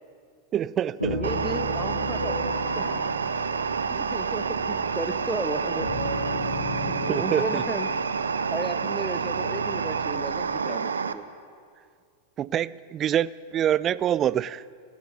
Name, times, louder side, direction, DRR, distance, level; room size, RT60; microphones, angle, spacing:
voice 1, 0.5-1.2 7.1-7.6 12.4-14.6, right 10 dB, 30° right, 20 dB, 0.3 m, -26 dB
sound 1, 1.0-10.6, left 1 dB, 85° left, 2.2 m, -35 dB
voice 2, 1.1-2.3 2.8-3.0 3.9-5.9 6.3-6.4 6.9-7.9 8.5-11.2, right 2 dB, 5° right, 9 dB, 0.7 m, -34 dB
sound 2, 1.2-11.1, right 6 dB, 70° right, 0.6 m, -28 dB
15.5 x 10.5 x 8.2 m, 2.2 s
figure-of-eight pair, 90°, 0 cm